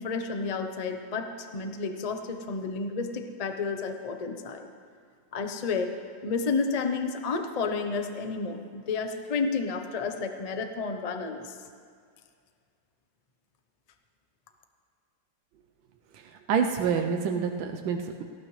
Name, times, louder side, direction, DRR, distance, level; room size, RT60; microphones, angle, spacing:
voice 1, 0.0-4.7 5.3-5.9 6.2-11.5, left 4 dB, 70° left, 6 dB, 0.3 m, -31 dB
voice 2, 16.5-18.2, right 6 dB, 90° right, 4 dB, 1.5 m, -27 dB
18.5 x 15.5 x 3.2 m, 2.1 s
omnidirectional pair, 2.0 m